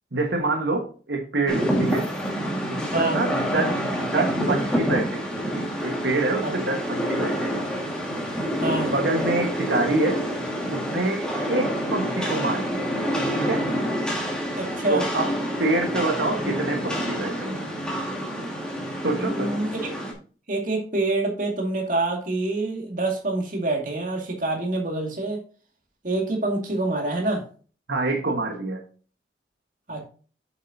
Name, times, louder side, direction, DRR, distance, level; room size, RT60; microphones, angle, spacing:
voice 1, 0.1-2.1 2.7-3.7 4.0-5.3 5.8-7.6 8.9-10.2 10.7-12.9 13.4-13.7 14.9-15.3 15.6-17.6 19.0-19.6 27.9-28.8, right 2 dB, 85° right, 2 dB, 1.6 m, -26 dB
Rain, 1.5-20.1, equal, 5° left, 2.0 m, -27 dB
voice 2, 2.9-3.2 6.4-6.5 8.6-8.9 14.6-15.1 19.1-19.7 20.5-25.4 26.0-27.5 29.9-30.1, right 2 dB, 45° right, 1 dB, 2.2 m, -26 dB
7.8 x 7.5 x 2.8 m, 0.39 s
head